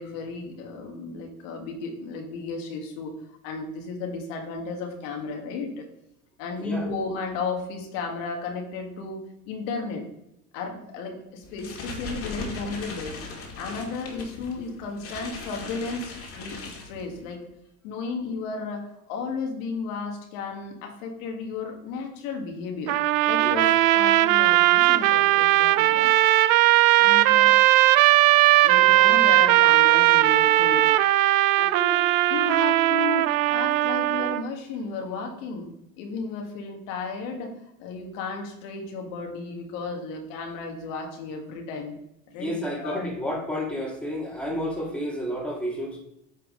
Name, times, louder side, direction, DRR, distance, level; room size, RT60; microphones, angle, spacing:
voice 1, 0.0-3.1 3.4-5.9 6.4-10.0 10.5-13.2 13.6-17.4 17.8-23.0 23.3-26.1 27.0-27.6 28.6-30.9 31.6-32.0 32.3-35.7 36.0-37.5 37.8-42.0 42.3-43.1, left 4 dB, 60° left, 2 dB, 1.7 m, -34 dB
sound 1, 11.4-17.4, left 4 dB, 30° left, 2.0 m, -39 dB
sound 2, 22.9-34.4, right 16 dB, 70° right, 0.6 m, -18 dB
voice 2, 42.4-46.0, equal, 5° left, -2 dB, 2.0 m, -31 dB
8.6 x 4.6 x 3.7 m, 0.81 s
hypercardioid pair, 95°, 43 cm